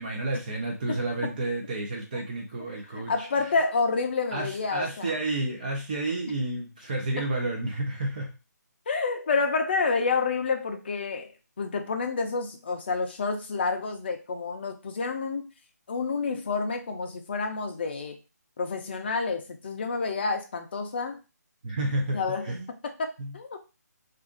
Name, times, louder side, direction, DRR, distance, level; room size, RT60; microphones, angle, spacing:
voice 1, 0.0-3.5 4.3-8.3 21.6-22.7 23.2-23.3, right 2 dB, 30° right, 0 dB, 0.5 m, -31 dB
voice 2, 3.1-5.1 7.2-7.3 8.9-11.3 11.6-15.5 15.9-18.2 18.6-21.2 22.1-22.5 22.8-23.6, left 4 dB, 35° left, 3 dB, 0.5 m, -29 dB
2.5 x 2.5 x 3.7 m, 0.30 s
hypercardioid pair, 170°, 9 cm